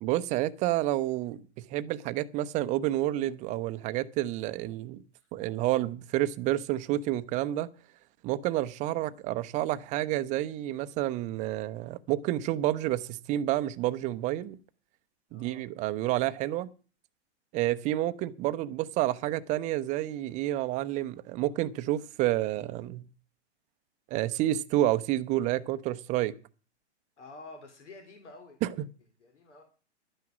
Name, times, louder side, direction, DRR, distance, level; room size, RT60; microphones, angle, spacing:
voice 1, 0.0-5.0 5.3-7.7 8.2-14.6 15.3-16.7 17.5-23.0 24.1-26.3 28.6-28.7, right 14 dB, 20° right, 0.6 m, -29 dB
voice 2, 15.3-15.7 27.2-28.6 29.2-29.6, left 3 dB, 85° left, 3.4 m, -49 dB
12.0 x 9.5 x 6.0 m
hypercardioid pair, 135°, 35 cm